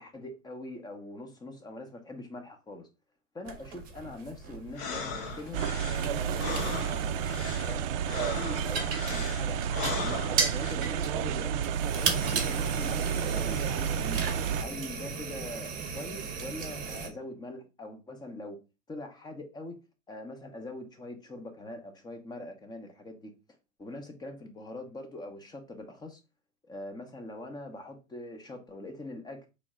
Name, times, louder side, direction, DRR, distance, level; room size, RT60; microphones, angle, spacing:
voice 1, 0.0-2.9 3.3-5.6 6.1-7.3 7.7-11.5 12.0-14.2 14.6-18.6 18.9-19.8 20.1-23.3 23.8-26.2 26.6-29.5, left 2 dB, 10° left, 0.7 m, -43 dB
sound 1, 3.4-17.1, right 5 dB, 20° right, 1.0 m, -36 dB
sound 2, 4.7-10.7, left 5 dB, 35° left, 0.9 m, -38 dB
sound 3, 5.5-14.6, right 8 dB, 50° right, 0.5 m, -31 dB
4.1 x 3.2 x 3.6 m
hypercardioid pair, 125°, 39 cm